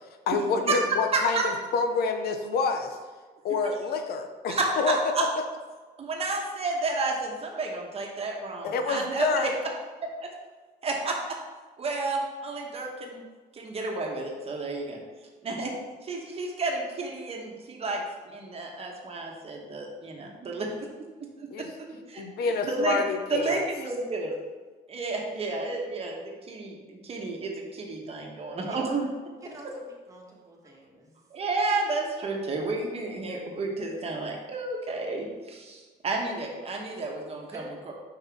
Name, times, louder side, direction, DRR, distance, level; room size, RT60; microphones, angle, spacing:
voice 1, 0.3-1.4 1.7-3.0 3.4-4.6 4.8-5.0 8.6-9.5 21.5-21.7 22.2-23.6, left 4 dB, 65° left, 6 dB, 0.6 m, -27 dB
voice 2, 1.1-1.5 4.5-5.3 6.0-9.5 10.0-10.3 10.8-11.4 11.8-13.2 13.5-15.0 15.4-15.7 16.0-20.7 21.2-21.7 22.1-23.0 23.3-24.3 24.9-29.1 31.3-37.9, right 3 dB, 35° right, 0 dB, 1.2 m, -31 dB
voice 3, 29.4-31.2 37.5-37.7, right 2 dB, 20° right, -2 dB, 1.5 m, -46 dB
5.7 x 5.4 x 3.5 m, 1.3 s
cardioid pair, 110°, 17 cm